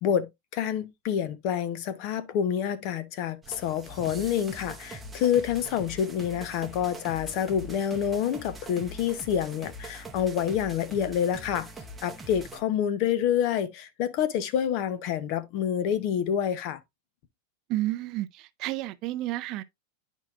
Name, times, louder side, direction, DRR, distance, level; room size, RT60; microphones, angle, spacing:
voice 1, 0.0-11.7 12.0-16.8, left 9 dB, 45° left, 0.7 m, -28 dB
sound 1, 3.4-12.6, right 1 dB, 5° right, 0.8 m, -43 dB
voice 2, 17.7-19.6, right 16 dB, 35° right, 0.4 m, -31 dB
10.0 x 4.5 x 2.4 m
supercardioid pair, 160°, 0 cm